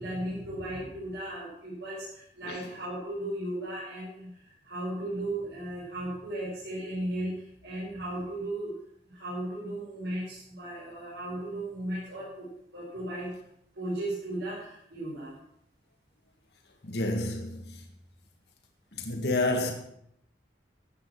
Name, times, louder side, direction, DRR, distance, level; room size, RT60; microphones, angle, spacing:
voice 1, 0.0-4.3 4.6-8.7 9.1-13.4 13.7-15.4, right 1 dB, 75° right, 5.3 m, -36 dB
voice 2, 16.8-17.8 18.9-19.7, left 2 dB, 65° left, 1.9 m, -29 dB
15.0 x 9.0 x 6.0 m
head